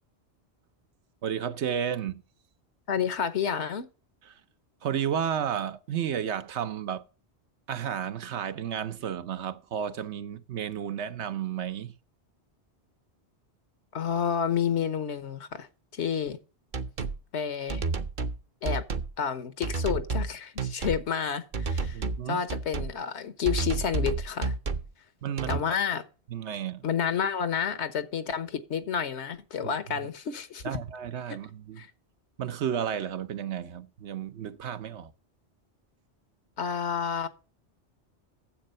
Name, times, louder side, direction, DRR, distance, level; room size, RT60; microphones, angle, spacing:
voice 1, 1.2-2.2 4.8-7.0 7.7-11.9 21.9-22.4 25.2-25.6 26.3-26.9 29.6-29.7 30.6-31.8 32.4-35.1, right 9 dB, 75° right, 1.1 m, -32 dB
voice 2, 2.9-3.9 13.9-15.7 15.9-16.4 17.3-17.8 18.6-18.8 19.2-22.0 22.3-24.5 25.5-26.0 26.8-30.7 31.8-31.9 36.6-37.3, left 7 dB, 75° left, 1.3 m, -30 dB
sound 1, 16.7-17.2 17.7-18.4 18.6-19.1 19.6-20.3 20.6-21.0 21.5-22.2 22.5-22.9 23.4-24.9 25.4-25.6, right 4 dB, 50° right, 0.9 m, -30 dB
10.0 x 7.6 x 5.3 m
omnidirectional pair, 1.2 m